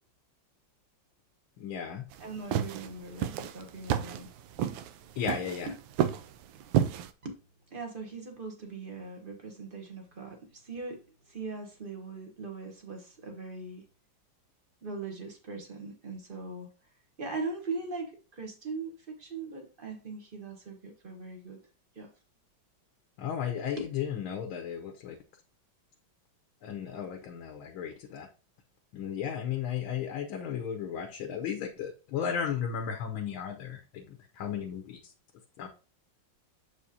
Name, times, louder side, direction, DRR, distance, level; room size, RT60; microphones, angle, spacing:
voice 1, 1.6-2.0 5.2-5.7 23.2-25.1 26.6-28.3 28.9-34.0 34.4-35.0 35.6-35.7, left 8 dB, 85° left, 4 dB, 1.6 m, -34 dB
sound 1, 2.1-7.1, right 10 dB, 80° right, 1.3 m, -30 dB
voice 2, 2.2-4.3 5.7-5.8 7.2-7.4 7.7-13.8 14.8-16.7 17.2-21.6 21.9-22.1 23.8-23.9, right 3 dB, 30° right, 4 dB, 1.1 m, -40 dB
7.2 x 5.0 x 2.7 m, 0.34 s
omnidirectional pair, 2.2 m